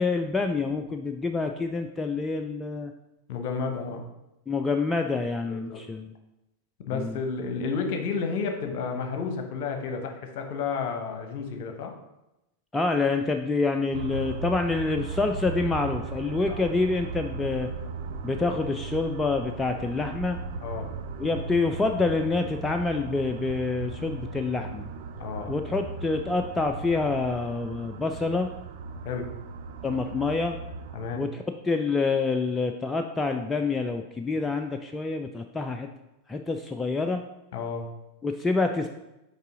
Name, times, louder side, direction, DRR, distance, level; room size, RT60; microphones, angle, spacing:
voice 1, 0.0-2.9 4.5-6.1 6.9-7.2 12.7-17.7 18.2-20.4 21.2-24.9 25.5-28.5 29.8-30.6 31.2-35.9 36.3-37.2 38.2-38.9, left 3 dB, 10° left, 5 dB, 0.3 m, -27 dB
voice 2, 3.3-4.0 5.5-5.8 6.9-11.9 16.5-16.6 20.6-20.9 25.2-25.5 29.0-29.3 30.9-31.2 37.5-37.9, left 5 dB, 50° left, 4 dB, 0.9 m, -31 dB
sound 1, 13.9-31.2, right 5 dB, 55° right, 0.5 m, -37 dB
5.4 x 4.6 x 3.7 m, 0.92 s
figure-of-eight pair, 90°, 0 cm